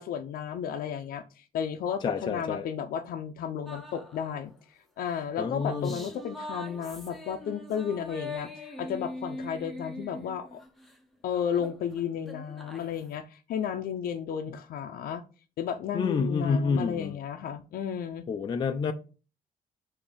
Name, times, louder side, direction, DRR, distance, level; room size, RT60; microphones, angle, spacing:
voice 1, 0.0-4.5 5.0-10.6 11.2-15.2 15.6-18.2, left 8 dB, 85° left, 0.6 m, -33 dB
voice 2, 2.0-2.7 5.4-6.1 15.9-17.2 18.3-18.9, left 5 dB, 30° left, 0.4 m, -28 dB
sound 1, 3.7-4.5 5.1-11.0 11.3-13.2, left 2 dB, ahead, 0.8 m, -42 dB
7.2 x 2.7 x 5.0 m
cardioid pair, 170°, 15 cm